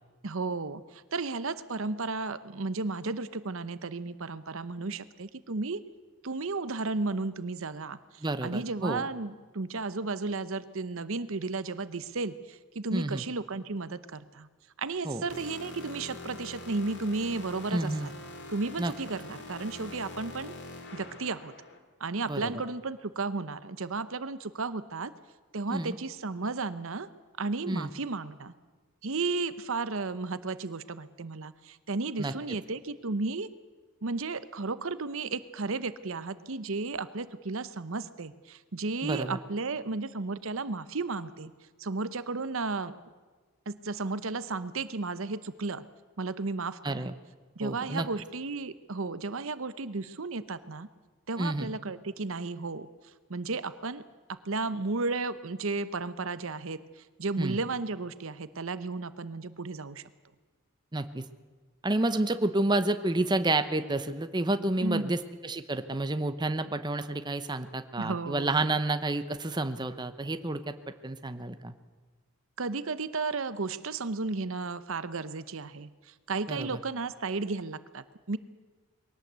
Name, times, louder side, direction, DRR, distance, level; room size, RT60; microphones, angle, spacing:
voice 1, 0.2-5.8 6.2-14.5 14.8-18.1 18.5-20.5 20.9-21.5 22.0-25.1 25.5-27.1 27.4-28.5 29.0-33.5 34.0-41.5 41.8-43.0 43.7-45.8 46.2-47.1 47.6-50.9 51.3-52.9 53.3-54.0 54.3-60.0 64.8-65.2 68.0-68.8 72.6-78.4, right 3 dB, 65° right, 14 dB, 0.9 m, -34 dB
voice 2, 8.2-9.0 12.9-13.2 15.0-15.2 17.7-18.1 18.8-18.9 22.3-22.5 25.7-26.0 27.7-27.9 32.2-32.3 39.0-39.4 46.8-47.1 47.6-48.1 51.4-51.7 57.4-57.6 60.9-61.2 61.8-70.7 71.0-71.7 76.5-76.8, right 2 dB, 20° right, 9 dB, 0.8 m, -30 dB
sound 1, 15.3-21.8, left 2 dB, 55° left, 2.4 m, -44 dB
22.0 x 18.0 x 8.1 m, 1.4 s
head